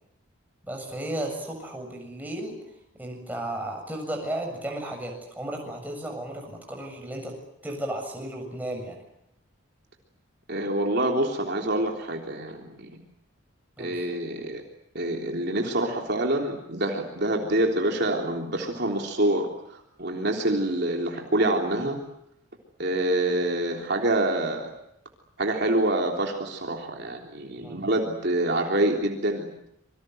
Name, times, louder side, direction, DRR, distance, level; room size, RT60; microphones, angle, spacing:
voice 1, 0.6-2.6 3.0-7.4 7.6-9.0 13.8-13.9 27.6-27.9, right 1 dB, 10° right, 1 dB, 7.3 m, -34 dB
voice 2, 10.5-12.9 13.8-14.6 14.9-22.0 22.8-24.7 25.4-29.5, right 1 dB, 55° right, 1 dB, 3.5 m, -26 dB
27.0 x 24.0 x 7.9 m, 0.79 s
head